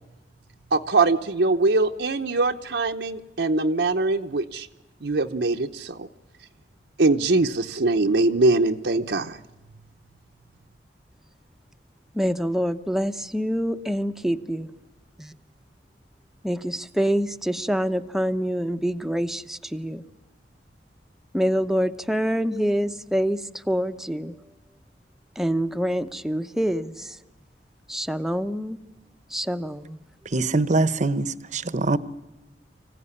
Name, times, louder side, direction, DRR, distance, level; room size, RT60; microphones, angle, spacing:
voice 1, 0.7-4.7 5.0-6.1 7.0-9.4, right 3 dB, 75° right, 0.9 m, -22 dB
voice 2, 12.1-14.7 15.2-15.3 16.4-20.0 21.3-23.4 23.7-24.3 25.4-27.2 27.9-28.8 29.3-30.0, equal, ahead, 0.8 m, -26 dB
voice 3, 30.2-32.0, right 3 dB, 45° right, 0.9 m, -23 dB
25.5 x 16.0 x 9.8 m
head